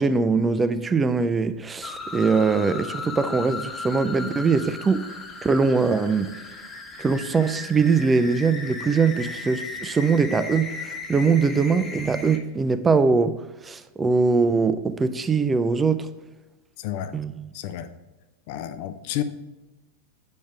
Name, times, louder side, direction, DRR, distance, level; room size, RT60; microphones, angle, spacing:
voice 1, 0.0-5.1 5.4-6.3 7.0-13.3 13.6-16.1 17.1-17.5, right 4 dB, 15° right, 0.5 m, -22 dB
sound 1, 1.8-12.4, left 3 dB, 25° left, 1.3 m, -36 dB
voice 2, 16.8-17.1 17.5-17.9 18.5-19.2, left 12 dB, 50° left, 0.6 m, -31 dB
8.5 x 5.2 x 3.4 m
figure-of-eight pair, 90°, 0 cm